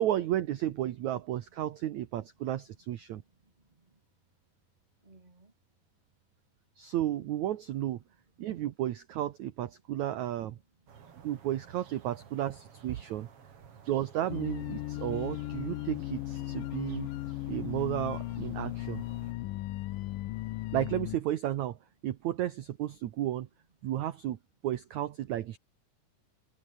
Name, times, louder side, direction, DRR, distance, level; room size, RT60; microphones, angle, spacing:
voice 1, 0.0-3.2 6.8-8.0 8.4-10.6 11.2-13.3 13.9-17.1 17.5-19.0 20.7-21.8 22.0-23.5 23.8-24.4 24.6-25.6, right 12 dB, 70° right, 1.9 m, -33 dB
voice 2, 2.2-2.8 3.1-4.0 5.0-5.5 8.4-8.7 10.7-11.3 19.2-19.8 22.0-22.2 23.8-23.9, right 3 dB, 15° right, 2.2 m, -67 dB
sound 1, 10.9-19.3, right 7 dB, 40° right, 2.7 m, -54 dB
sound 2, 14.3-21.2, left 17 dB, 75° left, 2.2 m, -36 dB
omnidirectional pair, 4.6 m